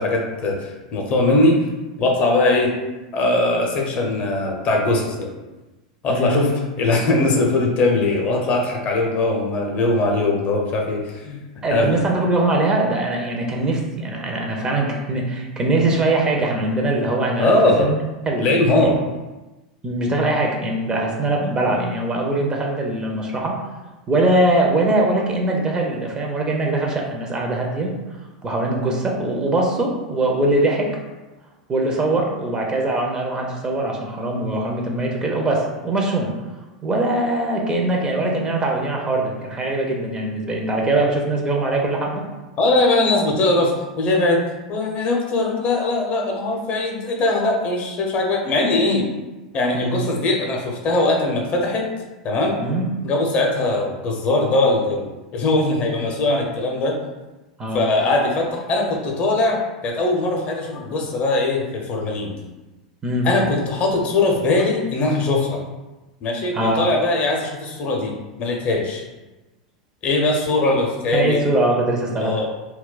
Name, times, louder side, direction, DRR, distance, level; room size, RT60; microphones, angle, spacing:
voice 1, 0.0-1.6 2.0-2.7 3.1-5.3 6.0-6.5 6.8-11.4 11.7-12.0 17.4-17.9 18.4-19.0 42.6-44.4 44.7-49.1 49.5-51.9 52.2-52.6 53.0-56.9 57.7-62.4 63.2-65.6 66.2-69.0 70.0-71.4 72.2-72.5, left 2 dB, 40° left, 0 dB, 0.6 m, -20 dB
voice 2, 11.6-18.0 18.2-18.5 18.8-18.9 19.8-23.6 24.1-27.9 28.4-30.9 31.7-36.3 36.8-42.2 49.7-50.0 52.6-52.9 57.6-58.1 63.0-63.3 66.5-66.8 71.1-72.3, right 2 dB, 20° right, 0 dB, 0.6 m, -22 dB
2.3 x 2.1 x 3.8 m, 1.1 s
hypercardioid pair, 90°, 4 cm